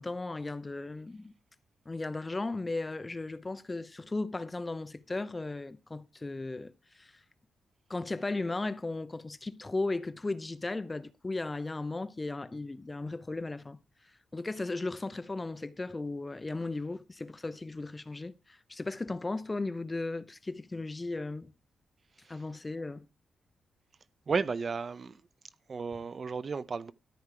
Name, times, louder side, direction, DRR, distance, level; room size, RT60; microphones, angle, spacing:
voice 1, 0.0-1.3 1.9-7.2 7.9-13.8 14.3-21.5 22.3-23.1, left 2 dB, 20° left, 0.7 m, -36 dB
voice 2, 24.3-25.2 25.7-26.9, right 5 dB, 40° right, 0.7 m, -33 dB
13.5 x 4.6 x 7.6 m
wide cardioid pair, 125°, 0 cm